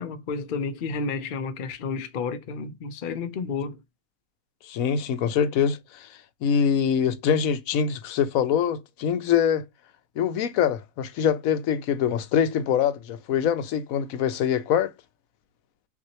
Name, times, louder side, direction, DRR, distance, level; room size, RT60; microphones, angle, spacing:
voice 1, 0.0-3.8, left 4 dB, 50° left, 0.7 m, -31 dB
voice 2, 4.6-9.6 10.2-14.9, left 8 dB, 80° left, 1.1 m, -24 dB
5.9 x 2.7 x 2.8 m
omnidirectional pair, 1.4 m